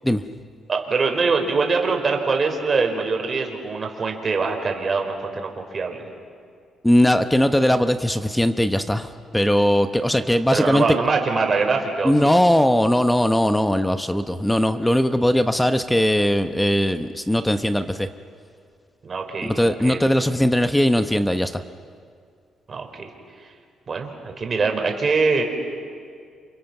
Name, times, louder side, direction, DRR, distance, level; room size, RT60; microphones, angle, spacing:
voice 1, 0.7-6.1 10.1-12.3 19.0-20.0 22.7-23.1 23.9-25.4, right 4 dB, 40° right, 3 dB, 4.5 m, -23 dB
voice 2, 6.8-10.9 12.0-18.1 19.4-21.6, equal, 5° left, 9 dB, 0.9 m, -19 dB
29.5 x 27.0 x 6.0 m, 2.2 s
cardioid pair, 90°, 0 cm